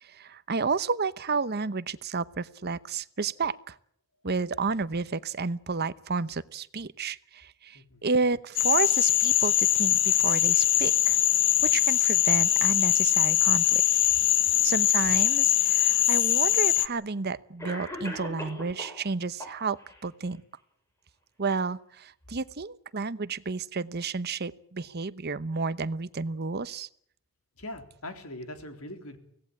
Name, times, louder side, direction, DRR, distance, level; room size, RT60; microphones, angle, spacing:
voice 1, 0.0-3.8 4.2-11.2 11.6-13.8 14.6-19.8 20.0-20.4 21.4-26.9, right 4 dB, 45° right, 15 dB, 0.9 m, -31 dB
voice 2, 7.7-8.1 27.6-29.2, left 1 dB, 75° left, 6 dB, 3.7 m, -41 dB
Frog, 8.6-16.9, left 13 dB, 55° left, 1.0 m, -22 dB
Cough, 15.9-16.0 17.0-17.1 17.6-19.0 19.4-20.0, left 1 dB, 15° left, 6.0 m, -39 dB
24.5 x 17.5 x 8.7 m, 0.66 s
head